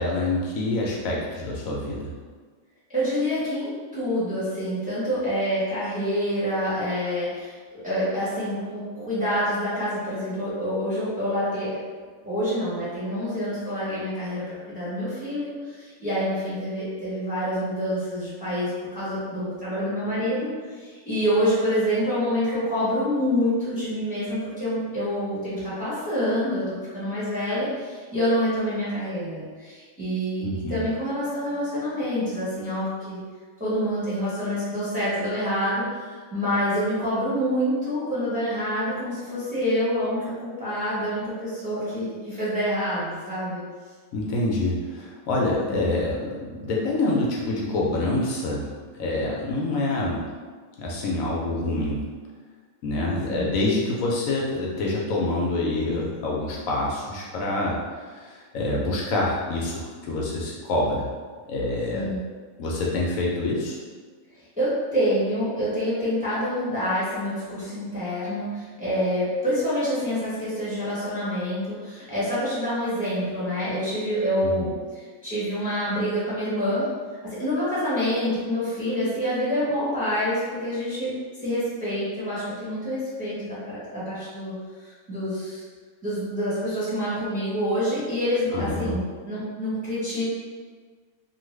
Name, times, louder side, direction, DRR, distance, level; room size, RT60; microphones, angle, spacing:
voice 1, 0.0-2.1 30.4-30.8 44.1-50.3 50.8-52.1 52.8-57.8 58.1-61.1 61.5-62.1 62.6-63.8 74.4-74.7 88.5-89.0, left 2 dB, 75° left, -3 dB, 1.0 m, -26 dB
voice 2, 2.9-11.7 12.2-33.2 33.6-43.6 45.7-45.8 53.3-53.5 61.9-62.2 64.6-76.8 77.2-81.1 81.4-85.6 86.0-90.2, equal, 5° right, -11 dB, 0.9 m, -27 dB
2.7 x 2.3 x 3.1 m, 1.5 s
omnidirectional pair, 1.5 m